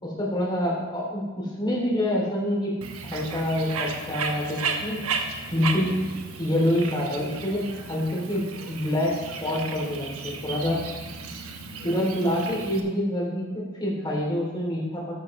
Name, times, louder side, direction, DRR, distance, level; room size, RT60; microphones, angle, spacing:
voice 1, 0.0-2.7 3.1-5.0 5.5-6.0 6.4-9.1 9.4-10.8 11.8-15.1, left 1 dB, 20° left, -4 dB, 3.1 m, -26 dB
Bird, 2.8-12.8, right 4 dB, 70° right, 1.1 m, -34 dB
14.0 x 9.1 x 3.2 m, 1.3 s
head